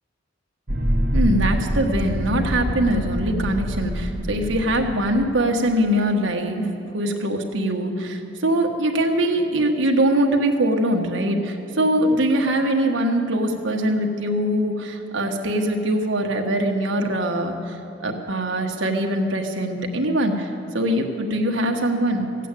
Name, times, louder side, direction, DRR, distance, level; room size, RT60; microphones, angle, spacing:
sound 1, 0.7-5.3, equal, 50° right, 1.8 m, -25 dB
voice 1, 1.1-6.7 6.9-22.5, right 1 dB, 80° right, 2 dB, 1.4 m, -22 dB
15.5 x 8.3 x 9.1 m, 3.0 s
head